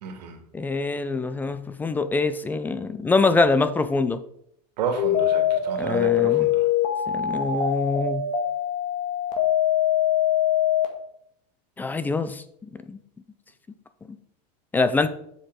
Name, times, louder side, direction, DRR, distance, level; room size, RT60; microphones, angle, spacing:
voice 1, 0.0-0.4 4.8-6.6, right 5 dB, 85° right, 5 dB, 2.0 m, -31 dB
voice 2, 0.5-4.2 5.8-6.5 7.1-8.3 11.8-13.0 14.7-15.1, left 3 dB, 10° left, 12 dB, 0.3 m, -24 dB
sound 1, 5.0-10.9, left 10 dB, 35° left, 1.9 m, -23 dB
7.5 x 6.6 x 4.6 m, 0.71 s
supercardioid pair, 155°, 21 cm